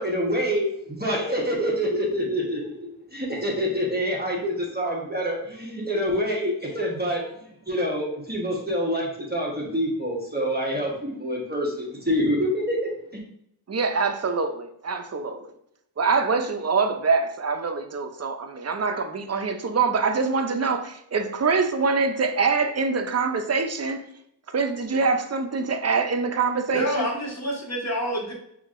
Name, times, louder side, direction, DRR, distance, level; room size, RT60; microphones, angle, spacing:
voice 1, 0.0-7.3 7.7-12.8, equal, 25° right, 1.1 m, -26 dB
voice 2, 13.7-15.5 16.0-24.1 24.5-27.1, right 4 dB, 40° right, 0.5 m, -24 dB
voice 3, 26.7-28.3, equal, 40° left, 1.4 m, -27 dB
5.8 x 2.7 x 2.4 m
wide cardioid pair, 60°, 41 cm